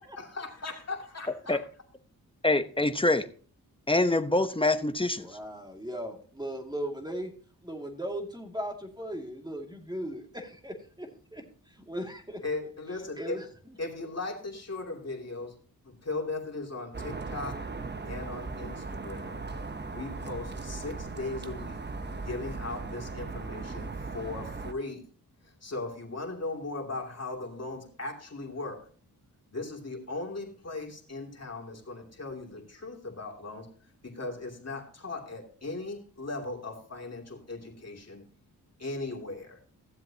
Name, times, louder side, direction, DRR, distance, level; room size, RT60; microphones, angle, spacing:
voice 1, 0.2-1.6 12.4-13.4 13.8-15.5 15.8-17.6 18.0-19.4 19.8-21.8 22.2-25.0 25.4-28.8 29.5-33.7 34.0-38.2 38.8-39.6, left 3 dB, 40° left, 2.8 m, -38 dB
voice 2, 2.4-3.2 3.9-5.3, left 2 dB, 15° left, 0.9 m, -25 dB
voice 3, 5.2-7.3 7.6-11.4 11.9-12.4 13.2-13.5, equal, 10° right, 2.4 m, -37 dB
sound 1, 16.9-24.7, right 3 dB, 30° right, 0.9 m, -38 dB
15.5 x 7.5 x 2.9 m
cardioid pair, 60°, 37 cm